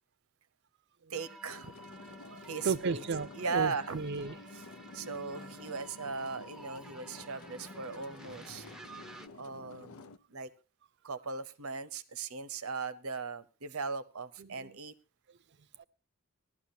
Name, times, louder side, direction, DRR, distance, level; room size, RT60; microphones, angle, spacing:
sound 1, 1.1-9.3, right 2 dB, ahead, 0.6 m, -51 dB
voice 1, 1.1-1.7 2.5-3.0 3.3-4.0 4.9-8.6 9.4-10.5 11.0-14.9, right 5 dB, 85° right, 0.9 m, -38 dB
sound 2, 1.5-10.2, left 4 dB, 80° left, 0.6 m, -51 dB
voice 2, 2.3-4.4 14.4-14.7 15.8-15.9, right 4 dB, 55° right, 0.6 m, -35 dB
17.5 x 12.0 x 2.8 m
head